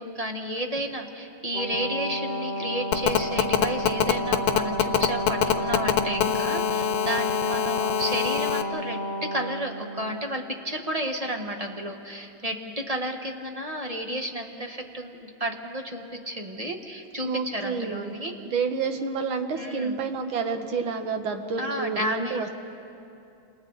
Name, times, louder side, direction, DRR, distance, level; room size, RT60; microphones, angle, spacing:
voice 1, 0.0-18.3 19.5-20.0 21.6-22.5, right 1 dB, 20° right, 3 dB, 1.2 m, -32 dB
Brass instrument, 1.5-10.2, equal, 45° left, 0.6 m, -31 dB
Telephone, 2.9-8.6, left 11 dB, 70° left, 1.5 m, -24 dB
voice 2, 17.2-18.1 18.5-22.5, right 5 dB, 75° right, 6 dB, 2.2 m, -29 dB
29.0 x 27.5 x 4.0 m, 2.7 s
omnidirectional pair, 2.3 m